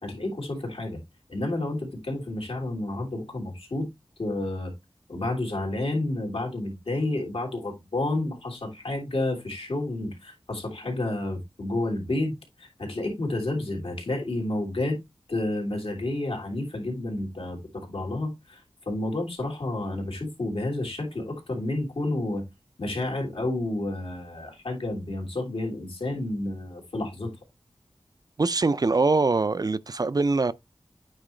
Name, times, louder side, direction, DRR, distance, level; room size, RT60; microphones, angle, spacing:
voice 1, 0.0-1.0 1.3-3.9 4.2-4.7 5.1-15.0 15.3-22.4 22.8-27.3, left 2 dB, 80° left, 3.2 m, -30 dB
voice 2, 28.4-30.5, right 3 dB, 45° right, 0.5 m, -23 dB
8.8 x 4.5 x 3.2 m
wide cardioid pair, 60°, 9 cm